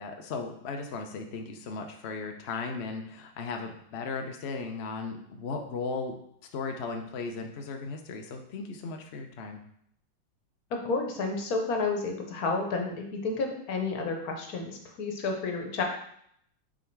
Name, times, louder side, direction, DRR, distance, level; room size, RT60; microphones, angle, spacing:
voice 1, 0.0-6.1 6.5-9.6, left 4 dB, 75° left, 4 dB, 0.6 m, -36 dB
voice 2, 10.8-12.9 13.2-15.8, left 3 dB, 55° left, 3 dB, 1.3 m, -30 dB
6.3 x 3.9 x 4.6 m, 0.69 s
omnidirectional pair, 2.1 m